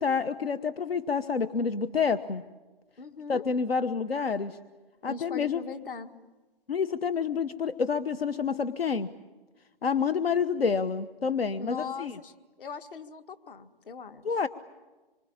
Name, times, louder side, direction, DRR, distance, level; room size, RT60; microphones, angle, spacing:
voice 1, 0.0-2.4 3.3-4.6 5.0-5.6 6.7-9.1 9.8-12.2 14.2-14.5, left 5 dB, 80° left, 12 dB, 1.1 m, -28 dB
voice 2, 3.0-3.4 5.0-6.1 11.6-14.3, left 4 dB, 65° left, 8 dB, 1.9 m, -40 dB
26.0 x 25.0 x 8.8 m, 1.2 s
hypercardioid pair, 150°, 30 cm